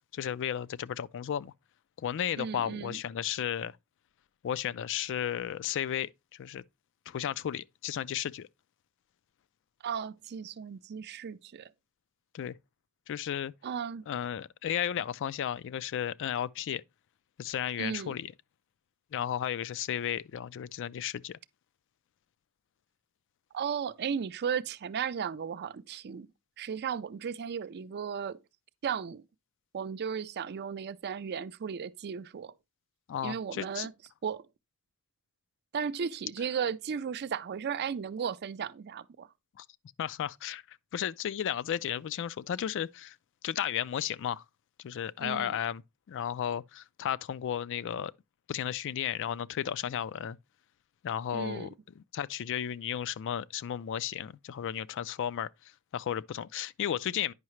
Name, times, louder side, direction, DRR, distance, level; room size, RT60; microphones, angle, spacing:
voice 1, 0.1-1.5 2.0-3.8 4.4-6.6 7.1-8.5 12.3-12.6 13.1-13.5 14.1-16.8 17.4-18.3 19.1-21.4 33.1-33.9 39.6-39.7 40.0-43.2 43.4-44.4 44.8-45.8 46.1-48.1 48.5-50.4 51.0-51.7 52.0-55.5 55.9-57.3, left 9 dB, 55° left, 0.3 m, -34 dB
voice 2, 2.4-3.0 9.8-11.7 13.6-14.0 17.8-18.2 23.5-26.3 26.6-28.4 28.8-29.2 29.7-32.5 33.2-33.9 34.2-34.4 35.7-39.3 45.2-45.5 51.3-51.7, right 7 dB, 45° right, 0.4 m, -35 dB
9.6 x 5.6 x 3.1 m
head